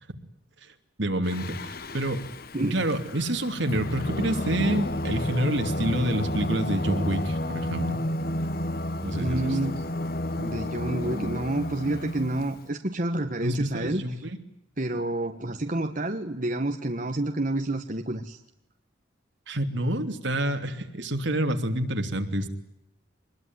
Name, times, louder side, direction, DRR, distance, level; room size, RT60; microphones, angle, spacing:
voice 1, 1.0-2.2 2.6-8.0 9.0-9.6 13.4-14.4 19.5-22.5, right 1 dB, 70° right, 6 dB, 3.0 m, -28 dB
Singing, 1.2-12.6, left 1 dB, 50° left, 1.1 m, -31 dB
voice 2, 9.2-9.9 10.4-14.0 14.8-18.4, right 1 dB, 40° right, 5 dB, 1.5 m, -29 dB
24.5 x 21.5 x 9.6 m, 0.84 s
head